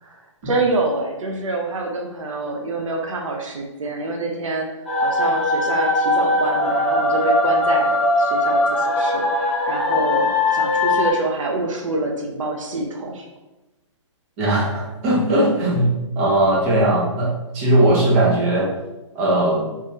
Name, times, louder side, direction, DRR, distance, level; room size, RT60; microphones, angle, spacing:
voice 1, 0.0-4.7 5.0-13.3, right 2 dB, 80° right, 1 dB, 0.6 m, -26 dB
sound 1, 4.9-11.1, left 1 dB, ahead, 0.3 m, -20 dB
voice 2, 14.4-18.7 19.1-19.7, right 1 dB, 30° right, -5 dB, 1.1 m, -19 dB
3.6 x 2.9 x 2.7 m, 1.0 s
hypercardioid pair, 155°, 16 cm